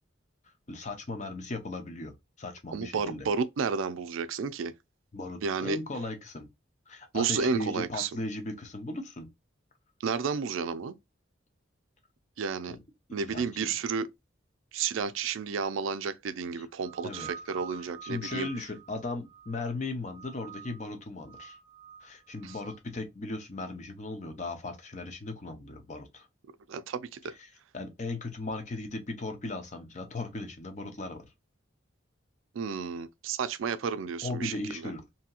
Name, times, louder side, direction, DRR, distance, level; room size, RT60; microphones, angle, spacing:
voice 1, 0.7-3.3 5.1-6.5 6.9-9.3 12.7-12.8 13.2-13.7 16.5-16.6 17.0-17.3 17.8-21.6 22.0-26.3 27.4-31.3 34.2-35.0, left 2 dB, 35° left, 0.6 m, -37 dB
voice 2, 2.7-4.7 5.4-5.8 7.1-8.1 10.0-10.9 12.4-12.8 13.1-14.1 14.7-18.5 22.4-22.5 26.7-27.3 32.5-34.8, right 5 dB, 80° right, 0.4 m, -31 dB
sound 1, 16.8-19.7 20.1-20.9 21.2-22.8, right 7 dB, 90° left, 1.2 m, -48 dB
2.8 x 2.7 x 2.3 m
head